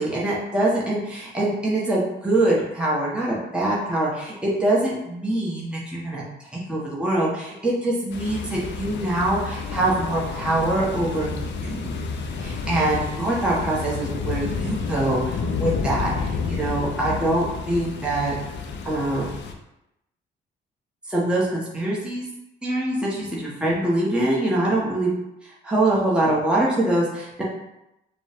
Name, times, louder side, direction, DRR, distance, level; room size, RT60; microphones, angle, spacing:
voice 1, 0.0-6.2 6.5-11.3 11.6-11.9 12.4-18.3 18.8-19.3 21.1-22.2 22.6-25.1 25.7-27.4, right 1 dB, 5° right, -6 dB, 1.1 m, -24 dB
sound 1, 8.1-19.5, left 5 dB, 65° left, 0.6 m, -30 dB
5.1 x 2.3 x 3.5 m, 0.88 s
cardioid pair, 90°, 20 cm